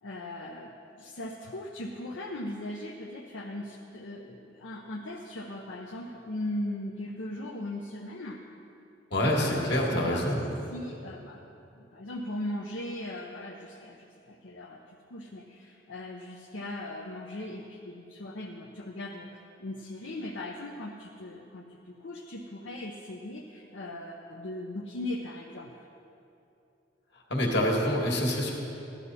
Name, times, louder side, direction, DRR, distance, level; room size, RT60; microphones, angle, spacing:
voice 1, 0.0-8.4 9.4-10.3 10.7-11.4 11.8-25.8, left 1 dB, 75° left, 0 dB, 0.7 m, -39 dB
voice 2, 9.1-10.4 27.3-28.5, left 1 dB, 60° left, -1 dB, 1.9 m, -26 dB
14.0 x 11.5 x 4.2 m, 2.8 s
head